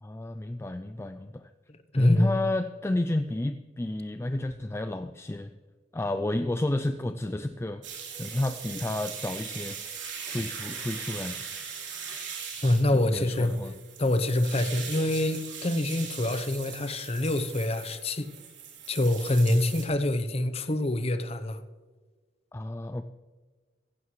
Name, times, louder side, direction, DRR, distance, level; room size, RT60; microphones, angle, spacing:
voice 1, 0.0-1.5 1.9-5.5 5.9-7.8 8.1-9.8 10.3-11.4 12.9-13.7 22.5-23.0, left 1 dB, 15° left, 9 dB, 0.3 m, -31 dB
voice 2, 1.7-2.3 12.6-13.5 14.0-18.3 18.9-21.6, left 1 dB, 30° left, 11 dB, 0.8 m, -26 dB
sound 1, 7.8-19.9, right 6 dB, 70° right, 3.3 m, -40 dB
16.0 x 15.5 x 3.2 m, 1.4 s
head